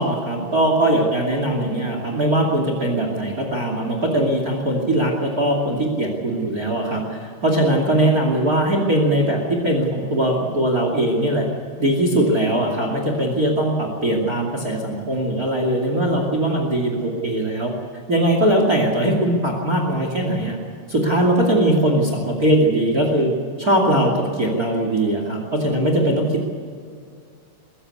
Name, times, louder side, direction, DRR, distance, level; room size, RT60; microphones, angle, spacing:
voice 1, 0.0-11.5 11.8-17.7 18.1-20.6 20.9-23.3 23.6-26.5, right 1 dB, 30° right, 3 dB, 1.7 m, -20 dB
21.0 x 15.0 x 8.4 m, 2.3 s
omnidirectional pair, 5.7 m